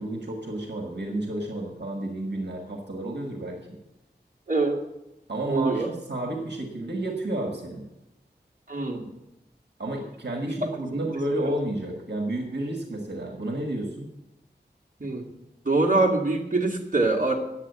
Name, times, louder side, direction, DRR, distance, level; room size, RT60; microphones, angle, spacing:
voice 1, 0.0-3.8 5.3-7.8 9.8-14.1, right 1 dB, 75° right, 2 dB, 1.6 m, -31 dB
voice 2, 4.5-4.8 5.5-5.9 8.7-9.1 10.5-10.6 15.0-15.2 15.7-17.4, right 3 dB, 50° right, 0 dB, 2.0 m, -24 dB
9.6 x 7.6 x 8.0 m, 0.95 s
wide cardioid pair, 60°, 18 cm